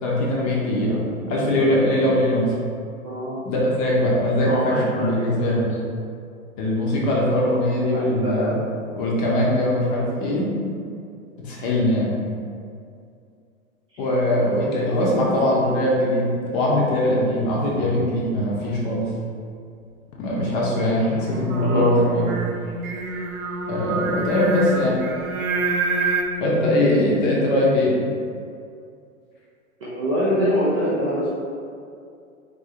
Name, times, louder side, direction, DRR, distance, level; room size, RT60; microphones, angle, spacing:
voice 1, 0.0-1.0 1.3-2.5 3.4-5.7 6.6-8.6 9.0-10.5 11.4-12.1 14.0-19.1 20.2-22.3 23.7-25.0 26.4-28.0, left 1 dB, 30° left, -4 dB, 0.7 m, -21 dB
voice 2, 3.0-3.4 4.4-5.7 7.9-8.6 13.9-14.0 14.8-15.9 21.6-21.9 29.8-31.3, equal, 25° right, -9 dB, 0.4 m, -25 dB
sound 1, 15.2-15.5 15.9-16.2 16.7-21.7, left 3 dB, 70° left, 0.6 m, -39 dB
Singing, 21.2-26.2, right 3 dB, 80° right, 0.5 m, -26 dB
3.7 x 2.7 x 2.8 m, 2.4 s
figure-of-eight pair, 105°, 42 cm